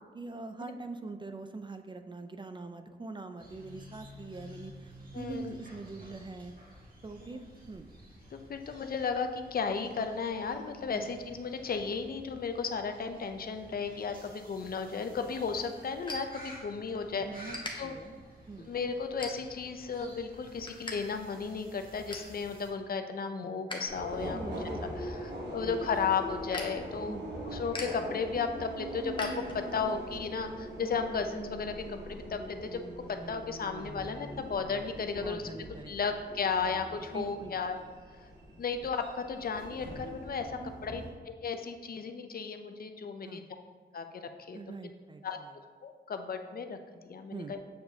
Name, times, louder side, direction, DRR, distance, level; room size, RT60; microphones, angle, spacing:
voice 1, 0.1-6.5 7.0-7.9 10.9-11.1 17.1-18.7 24.3-25.3 25.6-25.8 27.1-27.3 35.0-36.2 37.0-37.5 40.6-40.9 43.2-43.5 44.5-45.6 47.3-47.6, right 3 dB, 25° right, 8 dB, 0.4 m, -44 dB
sound 1, 3.4-22.7, equal, 55° right, 1.6 m, -52 dB
voice 2, 5.1-5.5 7.3-7.4 8.3-17.9 18.7-24.4 25.0-27.2 27.5-32.8 33.1-35.4 35.9-37.8 38.6-43.4 43.9-44.8 45.2-45.4 45.8-46.8 47.0-47.6, left 5 dB, 60° left, 7 dB, 0.5 m, -34 dB
sound 2, 16.0-17.0 17.3-17.7 18.3-18.5 19.1-19.8 20.1-21.0 21.2-21.3 21.7-22.4 22.8-23.8 24.2-29.9, left 2 dB, 25° left, 1.0 m, -43 dB
Subway metro underground, 23.9-41.1, equal, 90° right, 1.1 m, -42 dB
7.5 x 4.6 x 2.7 m, 1.5 s
cardioid pair, 70°, 18 cm